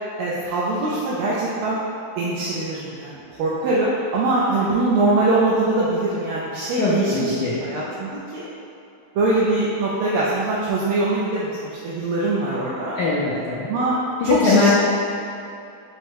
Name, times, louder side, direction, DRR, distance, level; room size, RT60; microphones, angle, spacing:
voice 1, 0.2-1.8 2.2-7.3 7.6-8.5 9.1-13.0 13.7-14.0 14.2-14.7, right 2 dB, 80° right, -7 dB, 1.5 m, -22 dB
voice 2, 6.8-7.6 13.0-13.7 14.2-14.7, left 4 dB, 75° left, -8 dB, 0.9 m, -21 dB
4.9 x 2.1 x 4.5 m, 2.7 s
omnidirectional pair, 2.4 m